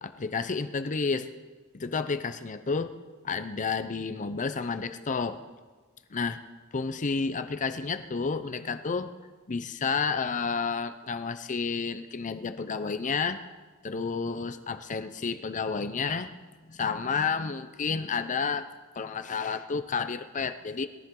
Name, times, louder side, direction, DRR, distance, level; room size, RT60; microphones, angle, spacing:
voice 1, 0.0-1.3 1.7-2.9 3.2-5.4 6.1-6.4 6.7-9.1 9.5-13.4 13.8-16.3 16.7-18.7 18.9-20.9, left 5 dB, 35° left, 9 dB, 0.6 m, -30 dB
21.0 x 13.5 x 3.8 m, 1.3 s
head